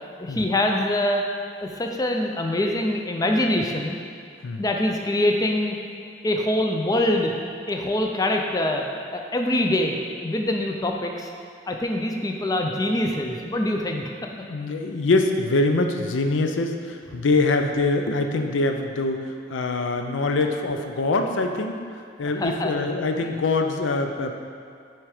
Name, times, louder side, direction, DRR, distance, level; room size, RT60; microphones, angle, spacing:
voice 1, 0.2-1.2 1.6-4.0 4.6-5.8 6.2-7.3 7.7-8.8 9.1-10.0 10.2-11.3 11.7-14.1 22.2-22.9 23.2-23.3, left 1 dB, 20° left, 2 dB, 0.4 m, -24 dB
voice 2, 14.4-21.8 22.2-24.3, left 2 dB, 90° left, 5 dB, 0.5 m, -24 dB
6.1 x 4.6 x 4.9 m, 2.3 s
head